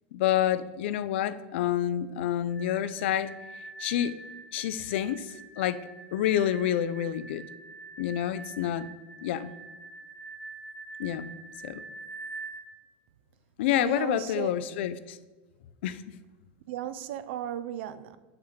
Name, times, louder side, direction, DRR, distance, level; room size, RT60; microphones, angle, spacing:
voice 1, 0.1-3.3 3.8-4.2 4.5-5.8 6.1-7.5 8.0-8.9 9.2-9.5 11.0-11.4 11.6-11.8 13.6-15.2 15.8-16.0, left 11 dB, 75° left, 0.4 m, -28 dB
sound 1, 2.5-12.7, right 4 dB, 45° left, 1.4 m, -45 dB
voice 2, 13.8-14.5 16.7-18.2, right 11 dB, 70° right, 0.4 m, -35 dB
5.7 x 3.4 x 5.6 m
hypercardioid pair, 105°, 6 cm